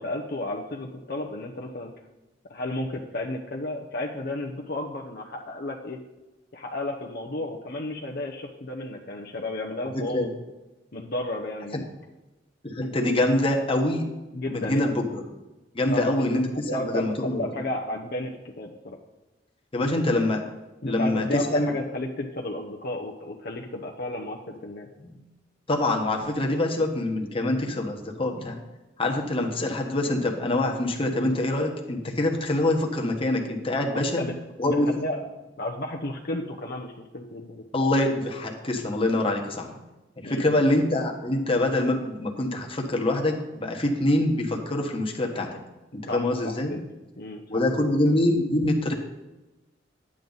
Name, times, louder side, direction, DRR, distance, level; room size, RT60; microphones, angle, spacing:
voice 1, 0.0-1.9 2.5-6.0 6.5-10.3 10.9-11.8 14.3-14.9 15.9-16.3 16.5-19.0 20.8-24.9 33.9-34.3 34.6-35.2 35.6-37.6 40.2-40.6 46.0-46.9 47.2-47.4 47.8-47.9, left 1 dB, 55° left, 1 dB, 0.9 m, -33 dB
voice 2, 9.9-10.3 12.6-14.1 14.5-15.2 15.7-17.4 19.7-20.4 20.8-21.7 25.0-25.2 25.7-28.6 29.0-34.2 34.6-35.1 37.7-39.7 40.2-45.5 46.1-46.7 47.5-48.9, left 1 dB, 30° left, 2 dB, 1.3 m, -25 dB
11.0 x 8.8 x 4.0 m, 1.0 s
head